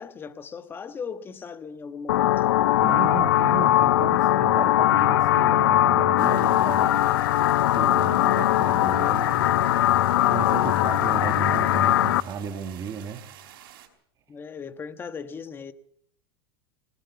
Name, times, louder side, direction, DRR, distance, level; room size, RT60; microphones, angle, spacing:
voice 1, 0.0-2.5 14.3-15.7, left 6 dB, 20° left, 1.2 m, -38 dB
sound 1, 2.1-12.2, left 13 dB, 80° left, 0.7 m, -20 dB
voice 2, 2.8-7.1 7.7-9.4 10.3-13.2, right 8 dB, 30° right, 2.0 m, -34 dB
sound 2, 6.2-13.9, right 12 dB, 70° right, 4.6 m, -48 dB
Bowed string instrument, 9.1-13.5, left 4 dB, 55° left, 3.9 m, -38 dB
20.5 x 18.5 x 6.9 m
supercardioid pair, 140°, 12 cm